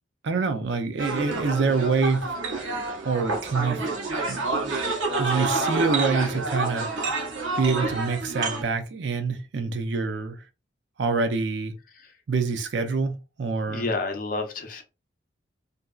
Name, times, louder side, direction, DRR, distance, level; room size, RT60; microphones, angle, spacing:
voice 1, 0.2-2.3 3.0-3.8 4.3-4.4 5.2-7.1 7.6-10.4 11.0-11.8 12.3-13.9, right 4 dB, 70° right, 0.5 m, -26 dB
sound 1, 1.0-8.6, right 3 dB, 90° right, 0.9 m, -28 dB
voice 2, 13.7-14.8, left 3 dB, 45° left, 0.5 m, -30 dB
2.8 x 2.6 x 2.3 m
head